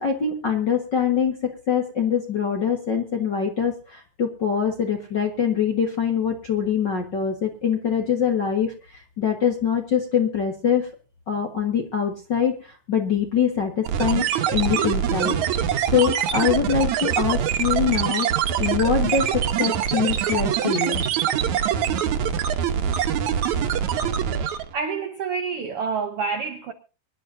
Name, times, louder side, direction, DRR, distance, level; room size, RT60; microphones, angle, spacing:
voice 1, 0.0-10.9 11.3-15.4 15.9-21.1, left 7 dB, 50° left, 1.4 m, -24 dB
sound 1, 13.9-24.7, right 8 dB, 65° right, 2.1 m, -24 dB
voice 2, 24.7-26.7, right 5 dB, 85° right, 1.2 m, -28 dB
25.0 x 11.0 x 2.7 m
omnidirectional pair, 4.1 m